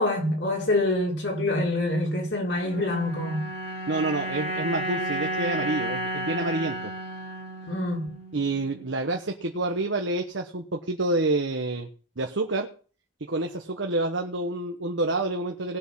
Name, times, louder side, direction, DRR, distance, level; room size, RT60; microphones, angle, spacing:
voice 1, 0.0-3.5 7.7-8.1, left 2 dB, 75° left, 4.6 m, -26 dB
sound 1, 2.6-9.0, right 1 dB, 55° left, 3.3 m, -33 dB
voice 2, 3.9-6.9 8.3-11.9 12.2-12.7 13.2-15.8, right 2 dB, 90° right, 1.2 m, -28 dB
19.0 x 6.5 x 5.6 m
head